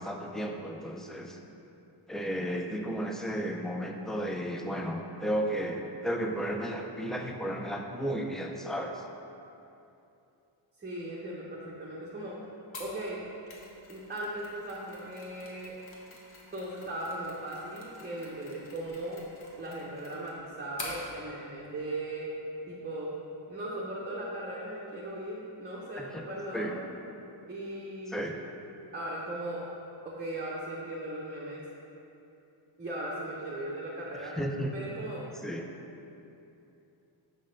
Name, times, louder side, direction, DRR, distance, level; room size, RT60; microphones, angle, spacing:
voice 1, 0.0-1.4 2.1-9.0 26.0-26.1 26.5-26.7 28.1-28.4 34.4-34.7 35.4-35.6, equal, ahead, 2 dB, 0.4 m, -33 dB
voice 2, 10.8-12.4 12.8-13.2 13.9-15.7 16.5-19.2 19.6-22.3 22.7-23.1 23.5-26.8 27.5-28.2 28.9-29.6 30.0-31.7 32.8-34.4 34.7-35.2, right 1 dB, 20° right, -6 dB, 0.8 m, -38 dB
Mechanisms, 12.7-21.0, left 2 dB, 75° left, 1.4 m, -48 dB
6.3 x 5.4 x 6.3 m, 2.8 s
wide cardioid pair, 180°, 47 cm